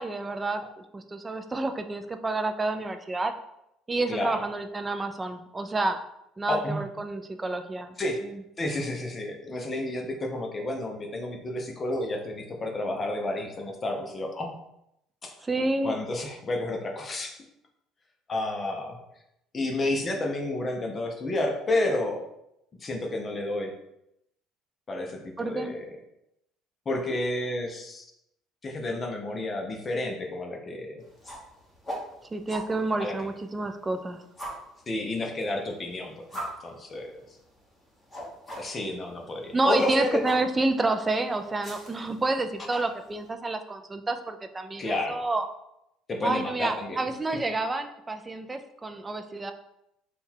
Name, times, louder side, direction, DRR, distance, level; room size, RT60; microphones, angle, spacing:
voice 1, 0.0-3.3 3.9-6.0 6.4-7.9 8.2-8.4 15.4-16.0 25.4-25.7 32.3-34.2 39.5-45.4 46.2-49.5, right 2 dB, 20° right, 7 dB, 0.4 m, -29 dB
voice 2, 6.5-6.8 8.0-8.2 8.6-14.5 15.2-15.3 15.8-17.4 18.3-19.0 19.5-22.2 22.8-23.7 24.9-25.9 26.9-28.0 28.6-31.0 33.0-33.1 34.9-37.1 38.6-40.1 42.7-42.8 44.8-45.2 46.1-47.0, left 2 dB, 30° left, 2 dB, 0.6 m, -30 dB
sound 1, 31.0-43.3, right 1 dB, 10° left, 1.4 m, -43 dB
3.7 x 2.3 x 4.4 m, 0.82 s
cardioid pair, 115°, 0 cm